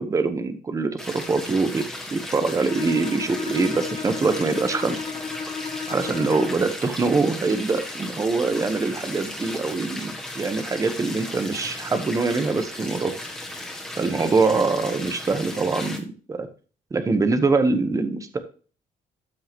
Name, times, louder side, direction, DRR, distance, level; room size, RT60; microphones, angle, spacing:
voice 1, 0.0-1.8 2.1-5.0 5.9-13.1 14.0-16.5 16.9-18.4, right 3 dB, 25° right, 9 dB, 1.0 m, -24 dB
sound 1, 1.0-16.0, left 1 dB, 5° left, 1.9 m, -36 dB
Bowed string instrument, 2.7-6.8, left 6 dB, 35° left, 0.9 m, -33 dB
13.0 x 5.6 x 3.0 m, 0.39 s
cardioid pair, 150°, 14 cm